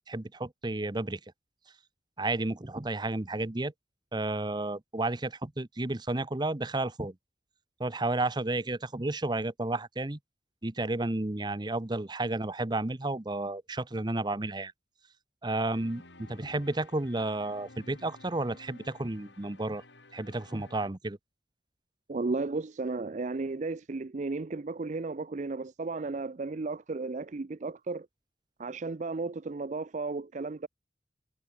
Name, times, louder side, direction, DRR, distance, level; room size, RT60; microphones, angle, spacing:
voice 1, 0.1-1.2 2.2-3.7 4.1-7.1 7.8-10.2 10.6-14.7 15.4-19.8 20.1-21.2, right 2 dB, 25° right, 0.8 m, -32 dB
sound 1, 15.7-20.9, left 2 dB, 85° left, 6.6 m, -54 dB
voice 2, 22.1-28.1 28.6-30.7, right 3 dB, 40° right, 0.5 m, -34 dB
head